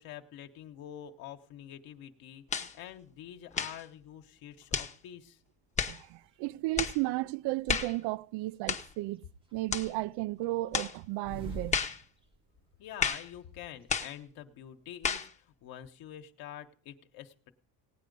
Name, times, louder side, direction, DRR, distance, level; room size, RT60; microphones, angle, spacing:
voice 1, 0.0-5.4 12.8-17.5, left 10 dB, 65° left, 1.2 m, -47 dB
sound 1, 2.5-2.8 3.5-3.8 4.7-5.0 5.8-6.0 6.8-7.0 7.7-8.0 8.7-8.9 9.7-9.9 10.7-11.0 11.7-12.0 13.0-13.3 13.9-14.2 15.0-15.3, left 6 dB, 20° left, 0.8 m, -32 dB
voice 2, 5.8-11.8, right 19 dB, 75° right, 0.5 m, -34 dB
sound 2, 6.3-6.5 7.0-7.9 8.4-9.2 9.5-12.6 12.9-13.0 13.2-14.0, right 1 dB, 15° right, 0.9 m, -46 dB
17.0 x 9.4 x 5.3 m
cardioid pair, 160°, 40 cm